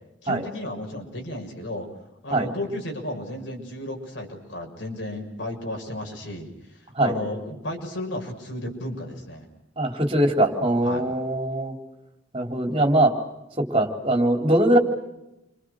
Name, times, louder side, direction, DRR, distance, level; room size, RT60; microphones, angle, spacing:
voice 1, 0.2-1.9 2.2-9.5 10.8-11.0, left 1 dB, 85° left, 2 dB, 6.5 m, -33 dB
voice 2, 9.8-11.7 12.3-13.1 13.6-14.8, right 1 dB, 30° right, 4 dB, 4.1 m, -21 dB
29.5 x 25.5 x 6.6 m, 0.91 s
head